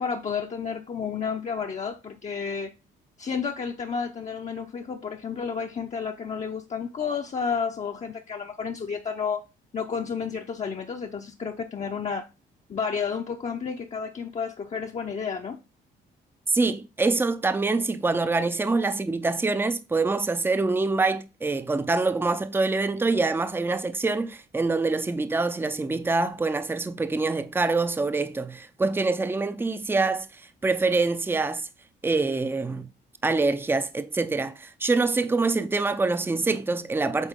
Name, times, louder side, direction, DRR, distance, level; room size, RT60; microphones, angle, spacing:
voice 1, 0.0-2.7 3.2-9.4 9.7-12.3 12.7-15.6, left 6 dB, 35° left, 0.7 m, -31 dB
voice 2, 16.5-30.3 30.6-31.7 32.0-32.9 33.2-37.3, right 3 dB, 10° right, 0.5 m, -25 dB
8.2 x 3.6 x 3.7 m
cardioid pair, 90°, 20 cm